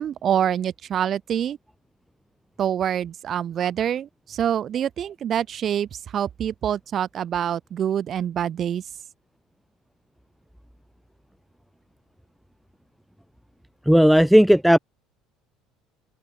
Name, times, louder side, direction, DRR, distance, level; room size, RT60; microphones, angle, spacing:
voice 1, 0.0-1.6 2.6-8.8, right 9 dB, 35° right, 2.4 m, -26 dB
voice 2, 13.9-14.8, equal, ahead, 0.5 m, -14 dB
open air
cardioid pair, 155°, 0 cm